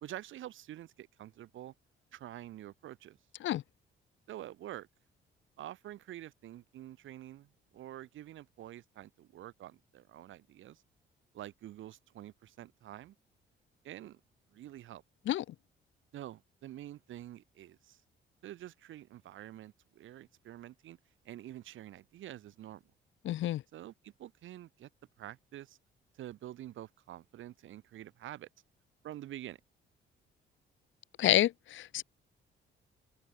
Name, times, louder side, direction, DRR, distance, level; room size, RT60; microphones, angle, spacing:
voice 1, 0.0-1.7 2.1-3.2 4.3-4.9 5.6-10.8 11.3-13.2 13.8-14.2 14.5-15.0 16.1-18.0 18.4-21.0 21.3-22.8 23.7-24.9 25.2-25.8 26.2-28.5 29.0-29.6, right 13 dB, 80° right, 3.6 m, -47 dB
voice 2, 23.2-23.6 31.2-32.0, left 13 dB, 75° left, 1.2 m, -28 dB
open air
cardioid pair, 90°, 20 cm